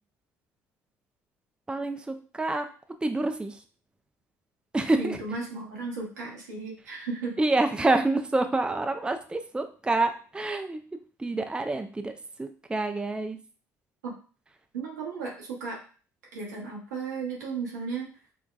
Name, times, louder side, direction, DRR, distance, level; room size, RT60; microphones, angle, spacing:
voice 1, 1.7-2.7 3.0-3.6 4.7-5.2 7.4-10.8 11.2-12.1 12.4-13.4, right 2 dB, 10° right, 7 dB, 0.4 m, -27 dB
voice 2, 5.0-7.4 14.0-14.1 14.7-15.8 16.3-18.1, right 4 dB, 90° right, -2 dB, 0.9 m, -35 dB
3.9 x 2.2 x 2.2 m, 0.39 s
hypercardioid pair, 60°, 9 cm